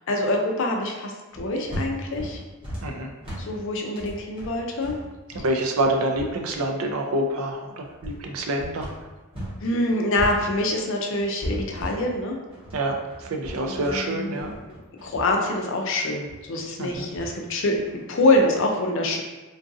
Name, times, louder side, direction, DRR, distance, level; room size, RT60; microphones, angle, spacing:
voice 1, 0.0-2.4 3.4-4.9 9.6-12.4 13.7-14.4 15.0-19.2, left 2 dB, 60° left, 2 dB, 0.5 m, -25 dB
sound 1, 1.3-9.6 9.9-18.6, equal, 25° right, 0.9 m, -37 dB
voice 2, 5.3-8.9 12.7-14.5 16.8-17.1, right 1 dB, 75° right, 3 dB, 0.5 m, -27 dB
3.8 x 2.5 x 2.6 m, 1.1 s
head